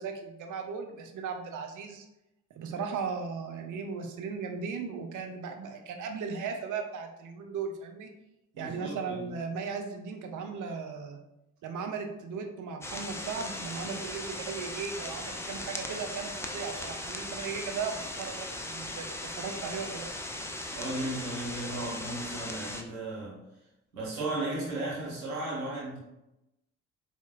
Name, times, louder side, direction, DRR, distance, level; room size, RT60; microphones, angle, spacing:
voice 1, 0.0-2.1 2.6-8.1 8.6-11.2 11.6-20.1, right 5 dB, 50° right, 4 dB, 0.7 m, -37 dB
voice 2, 8.5-9.3 20.7-23.4 23.9-26.0, right 2 dB, 85° right, -7 dB, 1.2 m, -35 dB
sound 1, 12.8-22.8, left 1 dB, 5° left, 0.4 m, -38 dB
4.1 x 2.9 x 2.4 m, 0.91 s
figure-of-eight pair, 45°, 40 cm